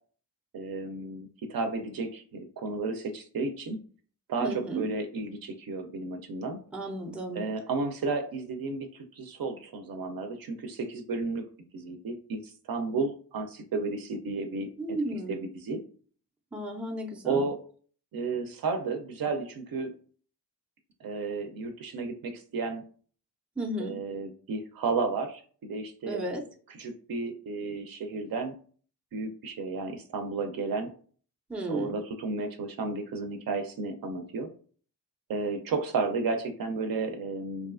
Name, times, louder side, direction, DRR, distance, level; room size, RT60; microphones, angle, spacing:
voice 1, 0.5-3.8 4.3-6.6 7.3-8.9 9.2-11.4 11.7-15.8 17.3-17.6 18.1-19.9 21.0-22.8 23.8-26.2 26.7-28.5 29.1-30.9 31.7-34.5 35.3-37.7, right 3 dB, 60° right, 5 dB, 0.5 m, -33 dB
voice 2, 4.4-4.9 6.7-7.4 14.8-15.4 16.5-17.5 23.6-24.0 26.1-26.4 31.5-31.9, right 1 dB, 5° right, 1 dB, 0.4 m, -33 dB
2.7 x 2.3 x 2.4 m, 0.43 s
cardioid pair, 70°, 40 cm